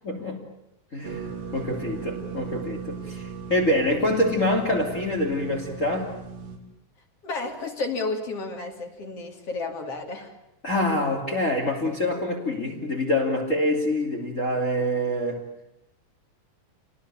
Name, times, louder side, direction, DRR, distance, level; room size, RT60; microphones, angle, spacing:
voice 1, 0.0-0.5 0.9-6.1 10.6-15.4, left 1 dB, 25° left, 1 dB, 3.1 m, -26 dB
sound 1, 1.0-6.6, right 6 dB, 50° right, 4.7 m, -37 dB
voice 2, 7.2-10.3, left 3 dB, 50° left, 4 dB, 3.8 m, -32 dB
28.5 x 20.0 x 8.9 m, 0.84 s
omnidirectional pair, 3.5 m